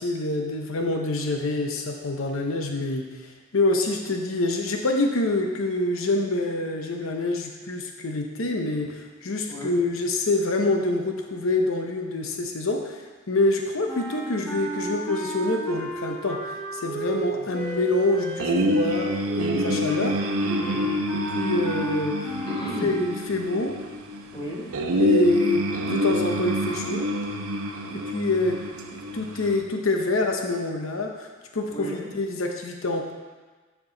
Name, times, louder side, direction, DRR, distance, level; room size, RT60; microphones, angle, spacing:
voice 1, 0.0-20.2 21.3-22.2 22.8-23.8 25.0-27.1 27.9-28.6 28.9-33.1, left 2 dB, 70° left, 3 dB, 0.8 m, -26 dB
voice 2, 9.5-9.9 17.3-17.5 20.6-20.9 22.4-22.9 24.3-24.7 31.7-32.1, right 1 dB, 20° left, -6 dB, 2.0 m, -34 dB
sound 1, 13.9-23.4, right 2 dB, 5° left, 1.0 m, -34 dB
sound 2, 18.4-29.6, equal, 80° right, 0.8 m, -27 dB
13.0 x 4.6 x 3.9 m, 1.4 s
head